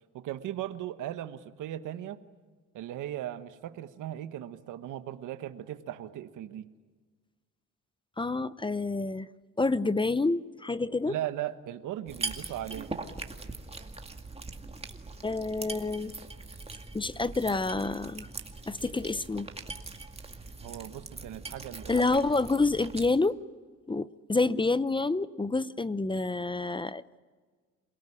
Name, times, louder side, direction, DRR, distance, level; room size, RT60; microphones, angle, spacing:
voice 1, 0.1-2.2 2.7-6.7 11.1-12.9 20.6-22.1, right 12 dB, 85° right, 11 dB, 1.3 m, -38 dB
voice 2, 8.2-9.3 9.6-11.2 15.2-16.1 16.9-18.3 18.7-19.5 21.9-23.4 23.9-27.2, left 3 dB, 15° left, 16 dB, 0.7 m, -28 dB
sound 1, 12.1-23.1, right 3 dB, 20° right, 2.1 m, -41 dB
28.0 x 18.0 x 10.0 m, 1.5 s
cardioid pair, 90°, 30 cm